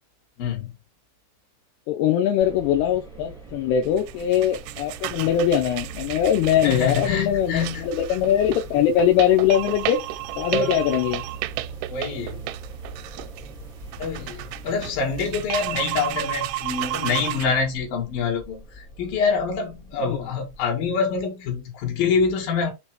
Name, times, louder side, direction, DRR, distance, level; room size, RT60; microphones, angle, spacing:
voice 1, 0.4-0.7 6.6-8.0 10.5-10.8 11.9-12.4 14.0-22.7, left 5 dB, 60° left, 3.4 m, -26 dB
voice 2, 1.9-10.0 10.4-11.2 20.0-20.2, left 9 dB, 80° left, 2.5 m, -21 dB
sound 1, 2.4-20.8, right 3 dB, ahead, 1.2 m, -41 dB
sound 2, 3.8-17.5, right 16 dB, 90° right, 2.9 m, -33 dB
7.0 x 3.0 x 4.5 m
omnidirectional pair, 5.1 m